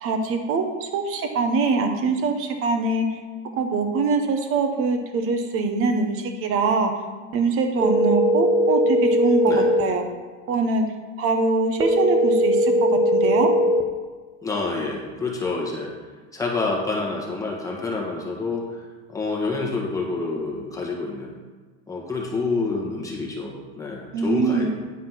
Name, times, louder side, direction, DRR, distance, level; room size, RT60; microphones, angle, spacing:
voice 1, 0.0-3.2 3.5-6.9 7.3-10.0 10.5-10.8 11.2-13.5 24.1-24.7, right 4 dB, 40° right, 5 dB, 1.0 m, -23 dB
sound 1, 7.8-9.8 11.8-13.8, equal, 10° right, 0.5 m, -19 dB
voice 2, 14.4-15.9 16.3-18.8 19.1-21.3 21.9-24.7, left 3 dB, 10° left, -2 dB, 1.4 m, -28 dB
9.5 x 4.2 x 5.7 m, 1.4 s
supercardioid pair, 145°, 36 cm